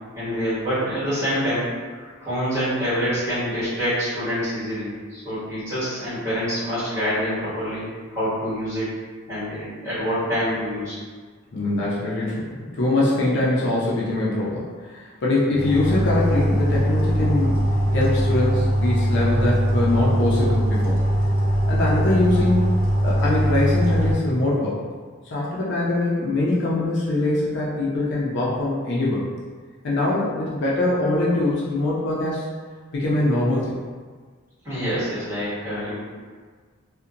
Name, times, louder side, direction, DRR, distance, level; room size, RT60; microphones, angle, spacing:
voice 1, 0.1-7.8 8.1-8.9 9.3-11.0 34.6-35.9, equal, 15° right, -14 dB, 1.5 m, -26 dB
voice 2, 11.5-17.6 17.9-21.0 21.6-22.8 23.0-24.8 25.3-29.3 29.8-32.5 32.9-33.7, left 2 dB, 55° left, -6 dB, 0.4 m, -23 dB
sound 1, 15.5-24.1, equal, 65° right, 0.4 m, -21 dB
2.7 x 2.1 x 2.4 m, 1.5 s
head